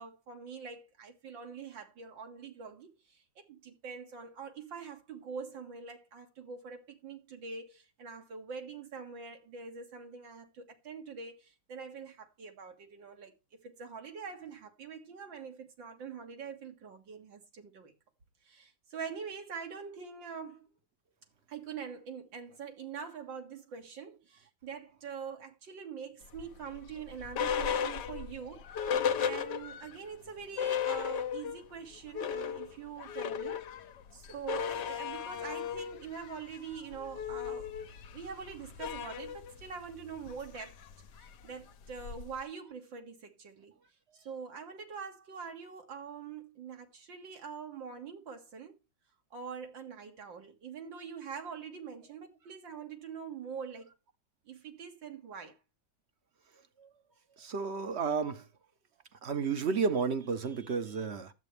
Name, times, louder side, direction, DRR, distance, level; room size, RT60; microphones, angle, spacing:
voice 1, 0.0-13.3 13.6-17.9 18.4-20.7 21.5-28.9 29.2-33.6 34.1-37.7 38.1-40.8 41.2-43.7 44.2-48.8 49.3-53.9 54.5-55.6, right 6 dB, 80° right, 2.7 m, -44 dB
sound 1, 26.3-30.0 30.3-30.4 30.6-31.7 32.0-42.4, left 8 dB, 70° left, 1.4 m, -36 dB
voice 2, 57.4-58.4 59.2-61.3, right 5 dB, 45° right, 1.0 m, -32 dB
12.5 x 8.1 x 3.4 m
omnidirectional pair, 2.0 m